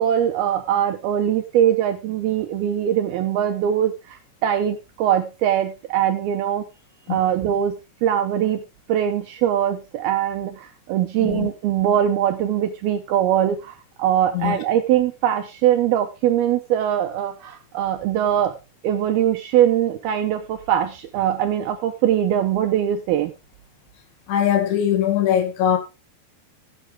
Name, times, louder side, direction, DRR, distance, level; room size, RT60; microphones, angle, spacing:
voice 1, 0.0-6.6 7.1-8.6 8.9-18.6 18.8-23.3, right 10 dB, 80° right, 2.3 m, -22 dB
voice 2, 11.2-11.5 14.3-14.6 24.3-25.8, left 10 dB, 75° left, 4.2 m, -21 dB
16.5 x 8.4 x 3.5 m
omnidirectional pair, 5.3 m